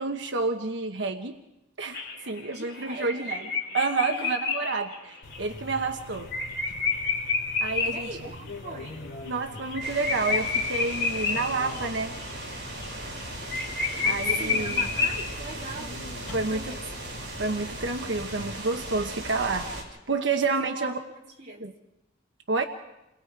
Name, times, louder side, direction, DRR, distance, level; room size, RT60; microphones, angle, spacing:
voice 1, 0.0-1.4 1.8-2.0 2.3-3.5 3.7-6.3 7.6-8.1 9.2-12.1 14.0-14.9 16.3-16.8 17.4-19.7 20.1-21.0 21.6-21.7 22.5-22.6, right 3 dB, 80° right, 5 dB, 1.2 m, -29 dB
sound 1, 1.9-8.1 8.5-8.6 8.9-9.0 9.3-11.8 12.2-12.5 12.8-12.9 13.2-13.3 13.5-15.6, left 4 dB, 55° left, 3.9 m, -29 dB
voice 2, 2.5-3.6 4.1-4.3 7.8-9.2 13.9-16.0 16.3-16.9 20.5-21.0 21.4-21.7, right 2 dB, 40° right, -2 dB, 3.4 m, -40 dB
sound 2, 5.2-18.5, left 2 dB, 75° left, 3.0 m, -43 dB
sound 3, 9.8-19.8, right 1 dB, 65° right, 6.8 m, -38 dB
28.5 x 21.5 x 4.7 m, 0.95 s
head